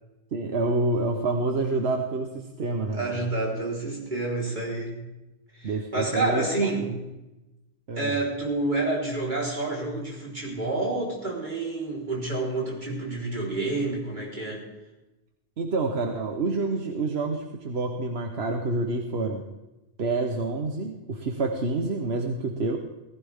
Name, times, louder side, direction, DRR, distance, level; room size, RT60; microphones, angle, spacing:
voice 1, 0.3-3.2 5.6-6.7 7.9-8.2 15.6-19.5 20.0-22.8, right 3 dB, 80° right, 3 dB, 1.4 m, -28 dB
voice 2, 2.9-5.0 5.5-7.0 8.0-14.7, right 2 dB, 50° right, -3 dB, 4.5 m, -29 dB
18.5 x 16.0 x 3.6 m, 1.0 s
omnidirectional pair, 1.1 m